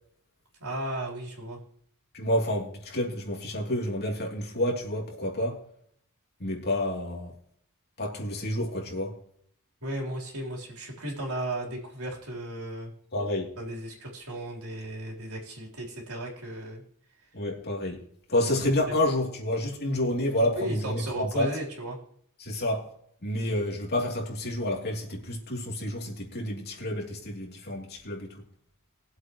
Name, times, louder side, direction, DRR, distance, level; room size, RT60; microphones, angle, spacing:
voice 1, 0.6-1.6 9.8-12.9 13.6-16.8 18.4-18.5 20.5-22.0, right 1 dB, 85° right, 3.9 m, -35 dB
voice 2, 2.1-5.6 6.4-7.3 8.0-9.2 13.1-13.5 17.3-21.5 22.4-22.9 23.2-28.4, left 1 dB, 50° left, 3.0 m, -29 dB
21.0 x 7.9 x 3.1 m
head